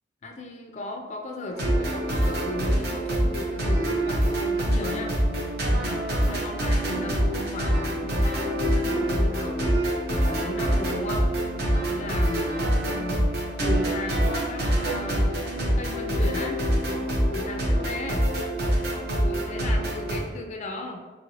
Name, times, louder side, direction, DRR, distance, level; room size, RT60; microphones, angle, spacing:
voice 1, 0.2-5.1 5.6-9.6 10.1-11.3 11.9-13.3 13.6-16.6 17.3-18.3 19.1-21.0, left 2 dB, 40° left, 2 dB, 0.3 m, -36 dB
sound 1, 1.5-20.2, equal, 60° right, 0.7 m, -25 dB
2.9 x 2.8 x 2.7 m, 1.3 s
head